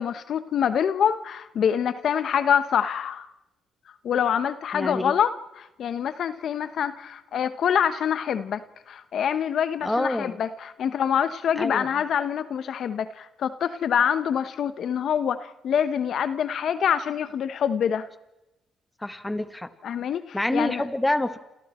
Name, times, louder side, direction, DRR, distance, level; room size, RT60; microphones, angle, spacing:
voice 1, 0.0-3.3 4.0-8.6 8.9-18.1 19.8-20.8, left 8 dB, 65° left, 12 dB, 1.1 m, -25 dB
voice 2, 4.7-5.1 9.8-10.4 11.6-11.9 19.0-19.7 20.3-21.4, left 1 dB, 10° left, 10 dB, 1.8 m, -27 dB
29.5 x 27.5 x 4.5 m, 0.95 s
cardioid pair, 90°, 0 cm